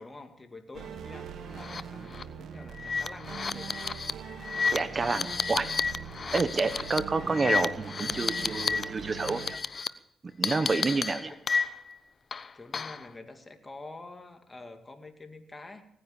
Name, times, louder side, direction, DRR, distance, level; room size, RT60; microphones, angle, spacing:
voice 1, 0.0-3.8 7.2-7.5 11.3-11.4 12.5-15.8, left 2 dB, 25° left, 6 dB, 2.4 m, -47 dB
sound 1, 0.7-9.5, right 7 dB, 70° right, 1.2 m, -42 dB
sound 2, 1.6-1.8 2.1-2.2 2.8-8.8 9.1-9.9 10.4-11.9 12.3-13.1, left 5 dB, 45° left, 0.7 m, -31 dB
voice 2, 4.7-5.7 6.3-9.6 10.4-11.3, right 3 dB, 40° right, 12 dB, 1.1 m, -29 dB
18.0 x 9.7 x 7.2 m, 0.78 s
supercardioid pair, 60°, 0 cm